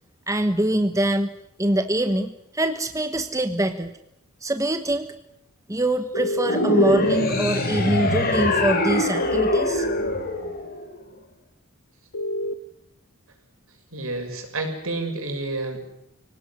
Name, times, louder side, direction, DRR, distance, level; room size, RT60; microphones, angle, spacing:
voice 1, 0.3-4.0 4.4-5.1 5.7-9.9, right 1 dB, 15° right, 8 dB, 1.2 m, -24 dB
sound 1, 6.1-7.1 9.1-10.1 12.1-12.5, left 1 dB, 75° left, 1.2 m, -27 dB
sound 2, 6.4-10.9, left 2 dB, 45° left, 4.8 m, -23 dB
voice 2, 13.9-15.8, right 2 dB, 70° right, 4 dB, 6.8 m, -29 dB
25.0 x 18.0 x 10.0 m, 0.78 s
head